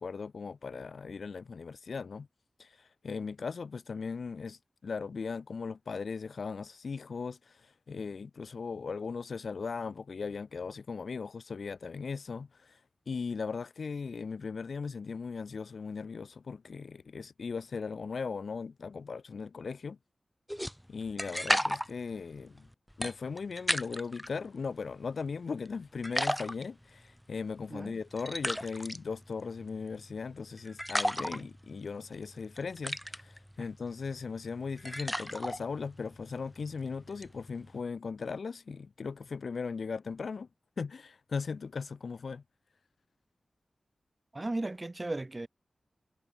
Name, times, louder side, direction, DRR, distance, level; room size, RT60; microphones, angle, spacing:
voice 1, 0.0-2.3 2.6-12.8 13.1-20.0 20.9-22.7 23.0-40.5 40.8-42.4, left 5 dB, 75° left, 3.8 m, -38 dB
sound 1, 20.5-24.3 24.7-25.7 26.0-37.8, equal, ahead, 3.7 m, -36 dB
voice 2, 44.3-45.5, right 2 dB, 25° right, 4.8 m, -36 dB
wide cardioid pair, 90°, 0 cm